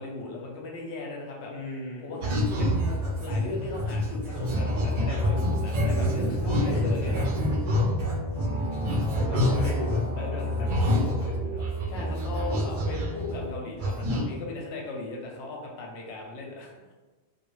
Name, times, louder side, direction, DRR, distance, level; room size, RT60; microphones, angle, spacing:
voice 1, 0.0-1.5 2.0-7.3 9.0-9.7 10.2-10.5 11.9-16.9, left 3 dB, 80° left, -1 dB, 0.8 m, -37 dB
voice 2, 1.5-2.6 6.4-6.9 8.4-8.9 9.2-11.7, left 1 dB, 30° left, -4 dB, 0.6 m, -38 dB
sound 1, 2.2-10.1 10.4-13.5 13.8-14.2, left 1 dB, 55° right, 0.6 m, -27 dB
sound 2, 4.5-13.5, equal, 30° right, 1.0 m, -33 dB
2.3 x 2.3 x 3.1 m, 1.2 s
omnidirectional pair, 1.1 m